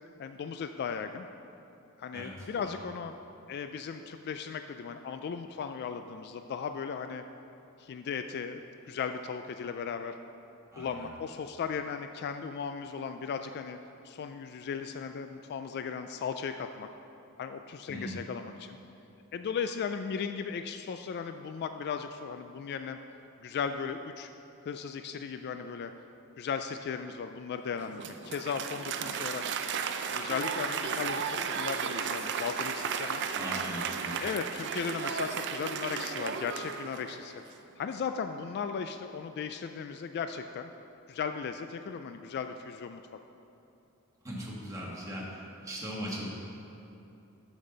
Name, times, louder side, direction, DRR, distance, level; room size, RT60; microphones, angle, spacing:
voice 1, 0.2-1.3 2.0-3.1 3.5-7.2 7.8-8.6 8.9-10.2 10.8-13.8 14.0-16.9 17.4-18.8 19.3-23.0 23.4-24.3 24.6-25.9 26.4-29.4 30.1-33.2 34.2-37.3 37.8-40.7 41.1-43.0, left 6 dB, 50° left, 8 dB, 0.3 m, -36 dB
voice 2, 2.1-2.7 10.7-11.0 17.9-18.2 33.3-34.2 44.2-46.3, equal, 15° right, -5 dB, 1.7 m, -39 dB
Applause, 27.8-37.3, right 6 dB, 55° right, 0.5 m, -34 dB
9.9 x 7.3 x 3.9 m, 2.8 s
head